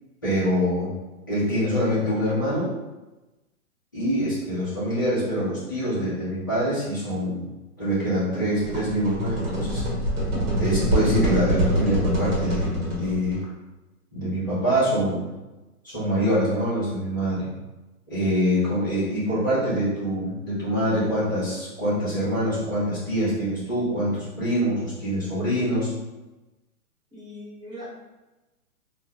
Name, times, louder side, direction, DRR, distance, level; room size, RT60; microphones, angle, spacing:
voice 1, 0.2-0.9 1.3-2.7 3.9-7.4 7.8-9.8 10.6-13.4 14.1-15.2 15.8-17.5 18.1-25.9, equal, 15° left, -14 dB, 0.5 m, -25 dB
sound 1, 8.6-13.4, equal, 65° right, 1.2 m, -25 dB
voice 2, 27.1-27.9, left 1 dB, 10° right, -15 dB, 1.2 m, -40 dB
2.2 x 2.2 x 2.7 m, 1.1 s
hypercardioid pair, 160°, 46 cm